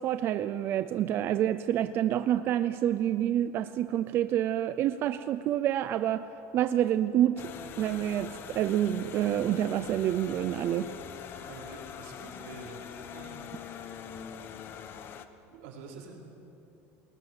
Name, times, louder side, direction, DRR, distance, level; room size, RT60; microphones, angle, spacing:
voice 1, 0.0-6.3 6.5-7.4 7.8-10.9, right 11 dB, 30° right, 12 dB, 0.5 m, -28 dB
sound 1, 7.4-15.3, left 8 dB, 30° left, 1.1 m, -43 dB
voice 2, 11.5-12.8 13.1-13.5 15.5-16.1, right 4 dB, 75° right, 0 dB, 5.4 m, -47 dB
30.0 x 21.0 x 8.1 m, 2.9 s
cardioid pair, 175°, 7 cm